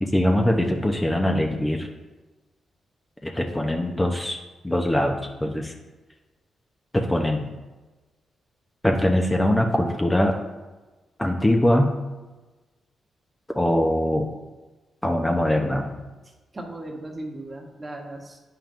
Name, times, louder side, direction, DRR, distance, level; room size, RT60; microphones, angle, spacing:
voice 1, 0.0-1.9 3.2-4.4 4.6-5.8 6.9-7.5 8.8-10.4 11.2-11.9 13.5-14.3 15.0-16.0, left 1 dB, 15° left, 2 dB, 0.8 m, -22 dB
voice 2, 16.2-18.4, right 1 dB, 30° right, 1 dB, 1.3 m, -37 dB
8.7 x 5.5 x 2.6 m, 1.2 s
supercardioid pair, 60°, 0 cm